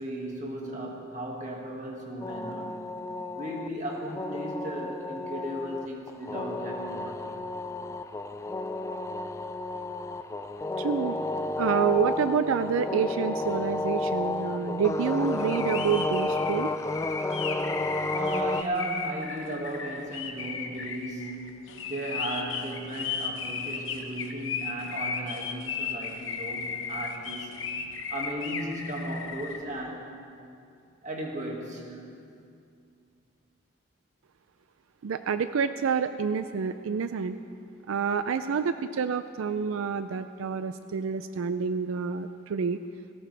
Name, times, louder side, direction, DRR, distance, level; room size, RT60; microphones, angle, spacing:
voice 1, 0.0-2.8 3.4-7.4 18.1-21.5 21.8-27.6 28.1-30.2 31.0-32.0, right 1 dB, 35° right, -1 dB, 2.0 m, -36 dB
sound 1, 2.2-18.6, left 2 dB, 15° left, 0.3 m, -32 dB
voice 2, 10.8-11.2 11.6-16.7 35.0-37.4 37.9-42.8, right 6 dB, 90° right, 11 dB, 0.4 m, -28 dB
sound 2, 15.3-29.6, left 6 dB, 75° left, 1.1 m, -35 dB
17.5 x 17.5 x 3.4 m, 2.4 s
head